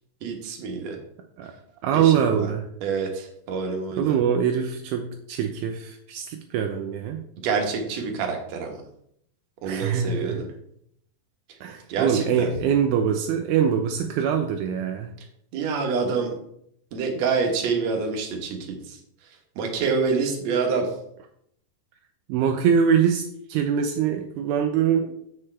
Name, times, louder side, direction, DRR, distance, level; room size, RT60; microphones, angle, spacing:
voice 1, 0.2-1.0 1.9-2.5 2.8-4.2 7.4-8.8 9.6-10.5 11.9-12.5 15.5-16.3 16.9-19.0 19.6-20.9, right 5 dB, 60° right, 2 dB, 2.0 m, -27 dB
voice 2, 1.8-2.6 4.0-7.2 9.6-10.4 11.6-15.1 22.3-23.2 23.5-25.1, right 8 dB, 80° right, 4 dB, 1.8 m, -23 dB
7.3 x 6.5 x 3.3 m, 0.72 s
omnidirectional pair, 4.0 m